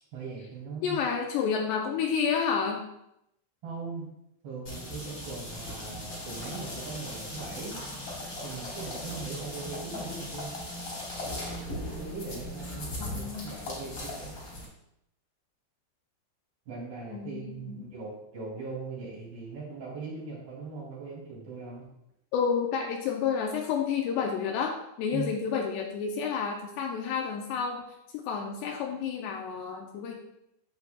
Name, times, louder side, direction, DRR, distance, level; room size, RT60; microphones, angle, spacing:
voice 1, 0.1-1.0 3.6-4.0 4.4-7.8 8.4-10.5 11.8-14.4 16.7-21.9 25.1-25.3, right 4 dB, 50° right, -8 dB, 4.8 m, -40 dB
voice 2, 0.8-2.8 13.0-13.5 17.1-17.8 22.3-27.8 28.1-30.1, left 6 dB, 90° left, 1 dB, 2.4 m, -30 dB
sound 1, 4.6-14.6, left 1 dB, 30° left, 2.6 m, -38 dB
11.0 x 8.2 x 2.4 m, 0.80 s
omnidirectional pair, 5.8 m